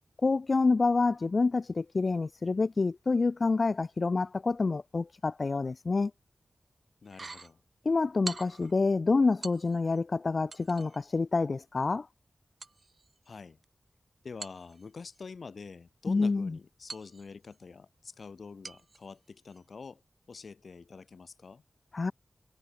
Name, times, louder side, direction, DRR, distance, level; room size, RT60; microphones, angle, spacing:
voice 1, 0.2-6.1 7.8-12.1 16.1-16.6 21.9-22.1, left 3 dB, 50° left, 0.8 m, -27 dB
voice 2, 7.0-7.6 13.3-13.6 14.2-20.0 20.3-21.6, left 4 dB, 70° left, 2.1 m, -46 dB
sound 1, 7.0-7.5 8.2-8.7 9.4-10.0 10.5-11.0 12.6-13.6 14.4-15.2 16.9-17.6 18.6-19.1 19.5-19.6, right 3 dB, 50° right, 6.7 m, -45 dB
wide cardioid pair, 105°, 0 cm